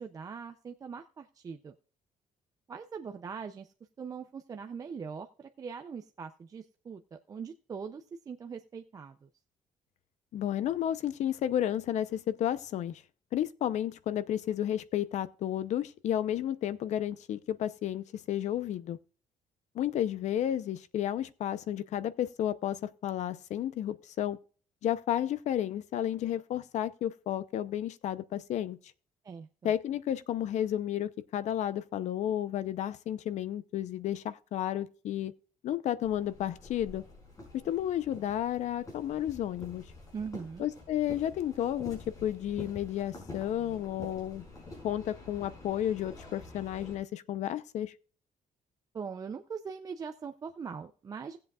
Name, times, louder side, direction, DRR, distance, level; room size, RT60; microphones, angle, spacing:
voice 1, 0.0-1.8 2.7-3.7 4.0-9.3 29.2-29.7 40.1-40.7 48.9-51.4, right 6 dB, 25° right, 0.5 m, -41 dB
voice 2, 10.3-13.0 13.3-19.0 19.7-24.4 24.8-28.8 29.6-35.3 35.6-37.0 37.5-39.8 40.6-44.4 44.8-47.9, left 11 dB, 60° left, 0.7 m, -32 dB
sound 1, 36.0-47.0, left 2 dB, 25° left, 5.5 m, -48 dB
18.5 x 7.7 x 2.4 m
cardioid pair, 180°, 13 cm